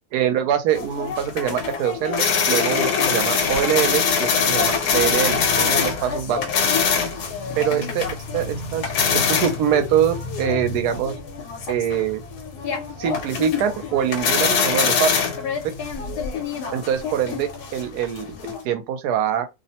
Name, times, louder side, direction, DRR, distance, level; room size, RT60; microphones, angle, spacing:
voice 1, 0.1-6.4 7.6-8.1 8.3-8.8 9.1-11.2 11.7-12.2 13.0-15.1 16.7-18.2 18.6-19.5, right 9 dB, 80° right, 1.1 m, -23 dB
sound 1, 0.7-18.6, left 6 dB, 80° left, 1.2 m, -24 dB
2.9 x 2.0 x 2.8 m
omnidirectional pair, 1.7 m